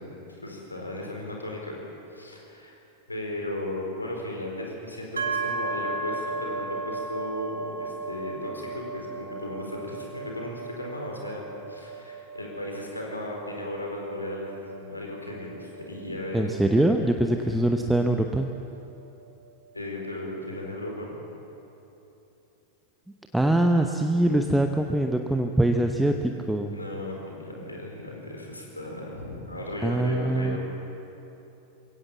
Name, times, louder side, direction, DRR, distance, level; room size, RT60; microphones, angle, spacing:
voice 1, 0.0-1.8 2.1-2.8 3.1-16.5 17.4-17.6 19.7-21.1 26.7-30.6, left 1 dB, 80° left, 0 dB, 4.3 m, -36 dB
sound 1, 5.2-18.8, right 3 dB, 75° right, 2.1 m, -36 dB
voice 2, 16.3-18.5 23.3-26.7 29.8-30.6, right 1 dB, 5° right, 5 dB, 0.9 m, -23 dB
22.5 x 17.0 x 7.3 m, 3.0 s
figure-of-eight pair, 90°, 0 cm